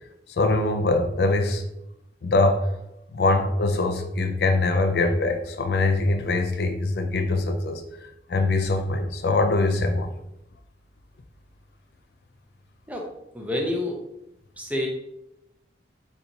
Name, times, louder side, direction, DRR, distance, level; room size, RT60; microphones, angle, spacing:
voice 1, 0.3-1.7 2.2-2.7 3.1-7.8 8.3-10.1, left 2 dB, 65° left, 6 dB, 0.4 m, -23 dB
voice 2, 12.9-14.0 14.6-14.9, left 1 dB, 10° right, 0 dB, 0.6 m, -29 dB
4.4 x 4.0 x 2.6 m, 0.85 s
head